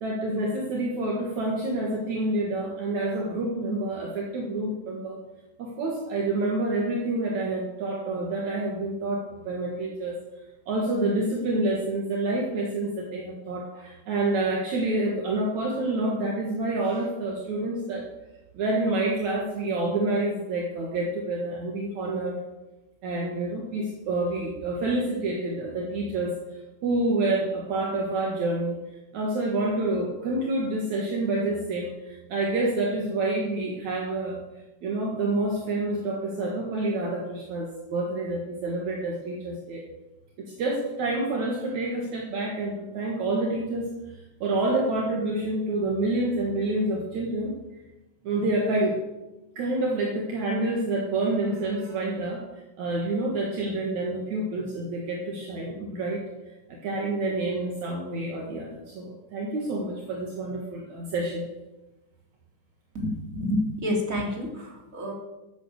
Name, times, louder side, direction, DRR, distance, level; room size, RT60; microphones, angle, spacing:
voice 1, 0.0-5.2 5.6-10.2 10.7-18.1 18.5-22.4 23.0-26.3 26.8-28.8 29.1-34.4 34.8-39.8 40.4-43.9 44.4-47.5 48.2-49.0 49.6-52.4 52.8-56.2 56.8-61.4, right 2 dB, 65° right, -2 dB, 3.1 m, -28 dB
voice 2, 62.9-65.1, left 1 dB, 25° right, -1 dB, 3.3 m, -29 dB
14.0 x 8.7 x 6.6 m, 1.0 s
omnidirectional pair, 3.6 m